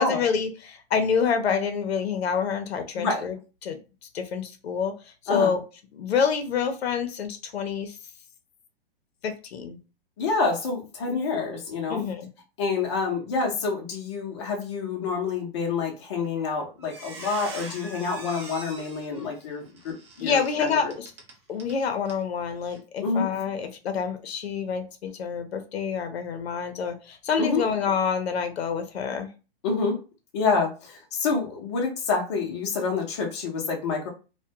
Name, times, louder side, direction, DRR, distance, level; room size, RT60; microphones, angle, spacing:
voice 1, 0.0-3.4 3.6-3.8 4.1-5.6 5.9-8.0 9.2-9.8 11.9-12.3 20.2-21.1 21.5-29.3, left 6 dB, 90° left, 7 dB, 0.6 m, -27 dB
voice 2, 10.2-12.0 12.6-20.9 23.0-23.3 27.4-27.6 29.6-30.0 30.3-34.1, left 4 dB, 30° left, 0 dB, 0.6 m, -27 dB
Squeak, 16.2-16.5 16.8-21.8 22.1-22.2 22.6-22.8, right 2 dB, 30° right, 0.5 m, -43 dB
2.2 x 2.1 x 2.7 m, 0.32 s
hypercardioid pair, 165°, 30 cm